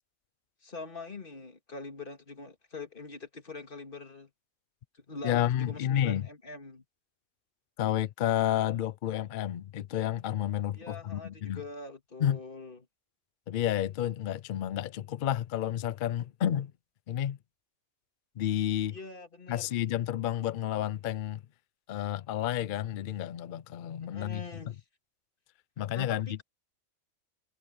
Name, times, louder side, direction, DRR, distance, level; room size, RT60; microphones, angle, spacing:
voice 1, 0.6-4.3 4.9-6.8 10.7-12.9 18.9-19.8 24.1-24.8 25.9-26.4, left 3 dB, 40° left, 2.2 m, -43 dB
voice 2, 5.2-6.3 7.8-11.6 12.2-12.4 13.5-16.7 17.1-17.4 18.4-19.0 19.5-21.4 21.9-24.4 25.8-26.4, left 11 dB, 65° left, 0.5 m, -30 dB
omnidirectional pair, 1.4 m